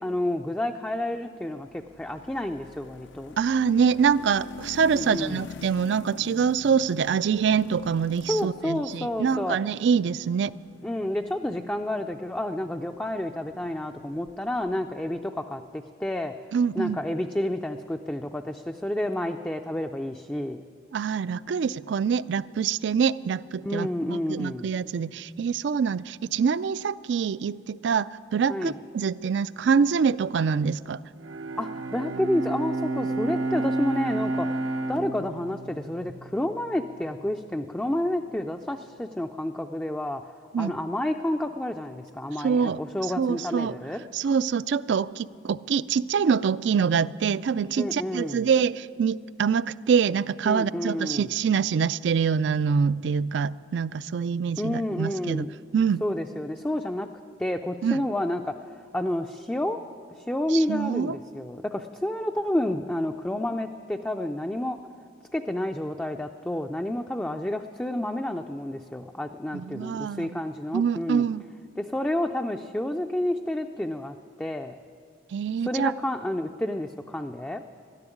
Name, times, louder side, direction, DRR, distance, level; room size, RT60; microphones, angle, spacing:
voice 1, 0.0-3.3 4.9-5.4 8.3-9.6 10.8-16.3 16.7-20.6 23.6-24.7 28.5-28.8 31.6-40.2 40.6-44.0 47.8-48.4 50.5-51.3 54.6-55.5 56.0-57.1 57.4-59.8 60.1-64.8 65.3-71.3 71.8-74.8 75.6-77.6, left 1 dB, 5° left, 4 dB, 0.4 m, -30 dB
sound 1, 1.6-14.8, left 5 dB, 75° left, 0.5 m, -46 dB
voice 2, 3.4-10.5 16.5-17.0 20.9-31.0 40.5-40.7 42.4-42.8 43.2-43.8 44.1-55.5 55.7-56.0 57.8-58.0 60.5-61.2 69.5-70.4 70.7-71.4 75.3-75.9, right 6 dB, 65° right, 18 dB, 0.3 m, -25 dB
Bowed string instrument, 31.2-36.7, right 2 dB, 90° right, 0.9 m, -30 dB
13.5 x 11.0 x 10.0 m, 2.2 s
head